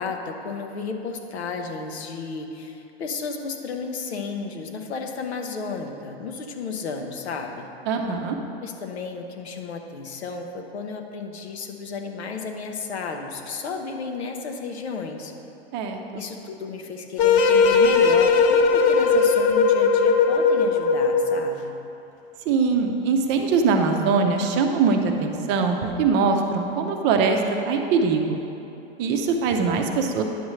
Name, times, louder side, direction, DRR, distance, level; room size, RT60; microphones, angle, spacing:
voice 1, 0.0-7.7 8.6-15.3 16.1-21.7, left 4 dB, 85° left, 4 dB, 0.9 m, -33 dB
voice 2, 7.9-8.4 15.7-16.2 22.5-27.4 27.7-28.4 29.0-30.2, right 5 dB, 35° right, 3 dB, 0.7 m, -22 dB
sound 1, 17.2-21.5, left 4 dB, 25° left, 0.4 m, -18 dB
10.0 x 6.3 x 3.2 m, 2.8 s
hypercardioid pair, 130°, 32 cm